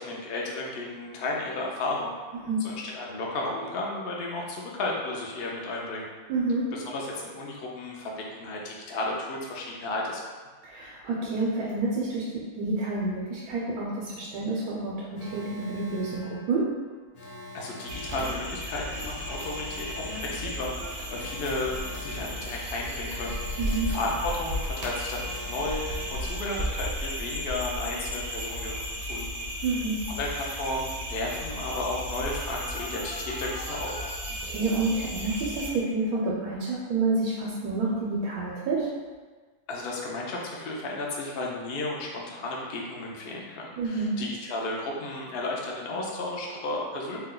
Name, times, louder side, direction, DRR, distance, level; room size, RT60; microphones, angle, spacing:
voice 1, 0.0-2.1 2.6-6.0 6.7-10.2 17.5-20.7 21.1-23.4 23.9-28.8 29.1-29.5 30.2-34.1 39.7-47.3, left 2 dB, 65° left, -2 dB, 0.6 m, -33 dB
voice 2, 6.3-6.7 10.6-16.7 23.6-23.9 29.6-30.0 34.4-38.9 43.8-44.2, right 3 dB, 85° right, -5 dB, 1.1 m, -29 dB
Alarm, 15.1-27.1 32.5-34.1, left 2 dB, 80° left, 1.1 m, -45 dB
sound 1, 17.9-35.7, equal, 60° right, 0.7 m, -34 dB
2.7 x 2.2 x 3.7 m, 1.4 s
omnidirectional pair, 1.6 m